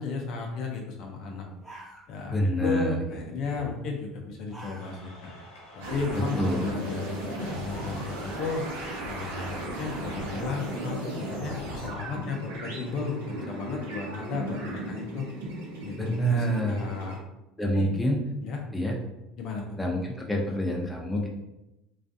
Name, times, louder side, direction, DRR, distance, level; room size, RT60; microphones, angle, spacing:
voice 1, 0.0-1.5 2.1-5.3 5.7-8.6 9.0-15.3 15.8-17.2 17.7-17.9 18.4-18.6 19.4-19.8, left 4 dB, 60° left, 1 dB, 0.5 m, -34 dB
sound 1, 1.1-1.2 1.5-2.5 2.8-3.2 4.2-5.2 5.6-5.7 6.3-7.3, right 1 dB, 15° right, 0.9 m, -48 dB
voice 2, 2.3-3.0 3.5-3.7 6.4-6.7 16.0-16.8 17.6-18.2 18.7-19.0 19.8-21.3, equal, 10° left, -1 dB, 0.6 m, -27 dB
sound 2, 4.8-12.1, left 1 dB, 80° left, 1.0 m, -50 dB
sound 3, 5.8-17.2, right 1 dB, 80° right, 0.7 m, -36 dB
2.4 x 2.3 x 2.6 m, 0.93 s
hypercardioid pair, 75°, 0 cm